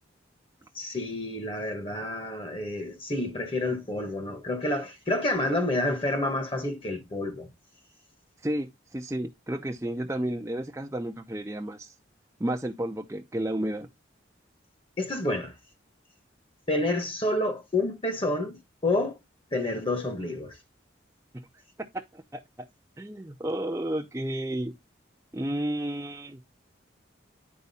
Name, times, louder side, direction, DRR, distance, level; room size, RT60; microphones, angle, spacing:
voice 1, 0.7-7.5 15.0-15.5 16.7-19.2 19.5-20.6, left 2 dB, 25° left, 1.3 m, -29 dB
voice 2, 8.4-11.9 12.4-13.9 21.8-22.4 23.0-24.7 25.3-26.4, right 1 dB, 15° right, 0.6 m, -32 dB
9.8 x 4.6 x 4.1 m
head